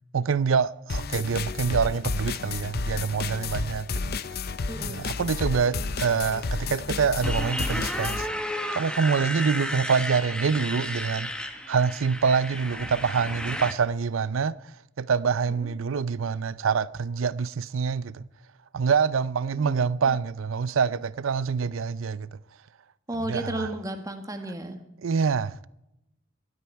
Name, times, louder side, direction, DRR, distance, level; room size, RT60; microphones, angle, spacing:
voice 1, 0.1-4.2 4.8-8.3 8.7-11.3 11.7-14.5 15.0-18.2 18.7-22.3 23.3-23.7 25.0-25.7, right 5 dB, 85° right, 0.5 m, -26 dB
sound 1, 0.9-8.3, left 4 dB, 50° left, 0.6 m, -31 dB
voice 2, 4.7-5.0 15.5-15.7 19.6-19.9 23.1-24.8, right 1 dB, 20° right, 1.6 m, -34 dB
Motorcycle, 7.2-13.7, equal, 5° left, 1.3 m, -33 dB
18.5 x 12.5 x 4.6 m
head